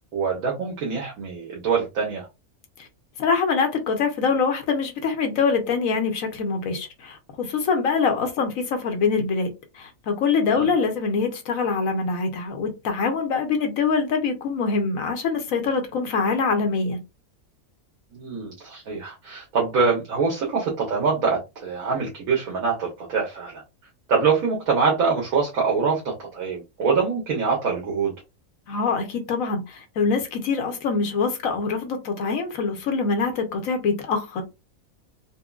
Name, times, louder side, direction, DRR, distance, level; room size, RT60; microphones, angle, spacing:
voice 1, 0.1-2.3 10.5-10.7 18.1-23.6 24.1-28.1, right 5 dB, 75° right, 1.4 m, -24 dB
voice 2, 3.2-17.0 28.7-34.4, left 5 dB, 70° left, 1.1 m, -24 dB
4.3 x 2.2 x 2.3 m
omnidirectional pair, 1.5 m